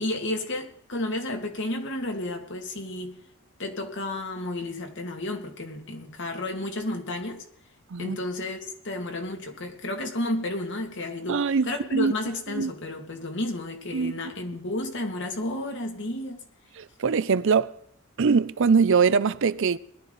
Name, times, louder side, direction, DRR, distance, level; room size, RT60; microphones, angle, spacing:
voice 1, 0.0-3.2 3.6-7.5 8.0-16.4, left 1 dB, 60° left, 2.4 m, -32 dB
voice 2, 11.3-12.1 12.5-12.7 13.9-14.1 16.8-17.7 18.2-19.8, right 5 dB, 65° right, 0.5 m, -22 dB
21.0 x 12.5 x 4.0 m
head